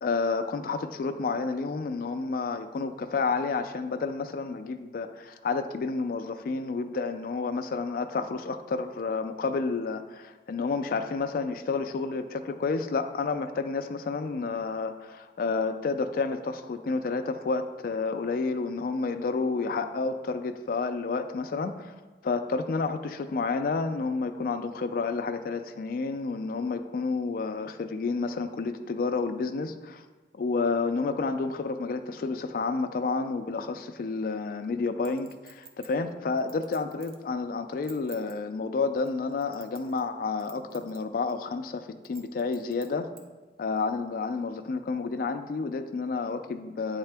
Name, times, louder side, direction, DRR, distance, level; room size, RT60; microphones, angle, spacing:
voice 1, 0.0-21.9 22.2-30.0 30.3-43.1 43.6-47.0, left 4 dB, 55° left, 8 dB, 0.3 m, -30 dB
Chink clink, 35.0-37.2 37.7-38.3 39.0-40.1 40.4-41.0 41.3-41.4 42.0-43.2 43.8-43.9, right 5 dB, 55° right, 0.7 m, -50 dB
8.9 x 3.6 x 3.4 m, 1.3 s
head